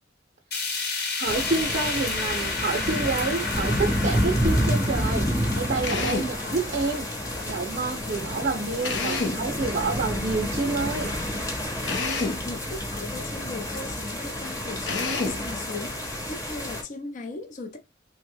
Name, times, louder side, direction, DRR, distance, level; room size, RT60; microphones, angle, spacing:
sound 1, 0.5-10.7 11.1-11.2 11.5-11.6 12.5-12.6, left 4 dB, 60° left, 1.0 m, -33 dB
sound 2, 1.2-16.8, equal, 20° left, 0.8 m, -29 dB
voice 1, 1.2-7.1 7.5-11.1, right 3 dB, 45° right, 0.5 m, -28 dB
Drill, 5.8-6.4 8.8-9.5 11.8-12.5 14.8-15.5, left 3 dB, 80° left, 0.6 m, -28 dB
voice 2, 12.2-17.8, left 3 dB, 40° left, 0.4 m, -38 dB
3.3 x 2.1 x 3.4 m
head